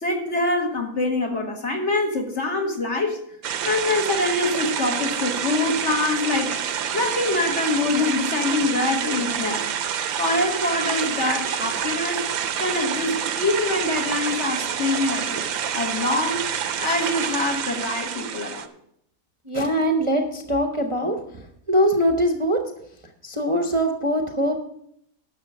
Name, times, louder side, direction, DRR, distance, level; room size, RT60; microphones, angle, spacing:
voice 1, 0.0-3.2 3.6-6.6 6.9-9.6 10.2-12.2 12.6-15.5 15.7-16.4 16.7-18.7, left 2 dB, 50° left, 2 dB, 1.9 m, -24 dB
sound 1, 3.4-18.7, right 8 dB, 75° right, 1.2 m, -27 dB
voice 2, 19.4-22.6 23.2-24.6, equal, 25° right, 2 dB, 0.8 m, -22 dB
10.5 x 6.7 x 6.1 m, 0.71 s
omnidirectional pair, 1.5 m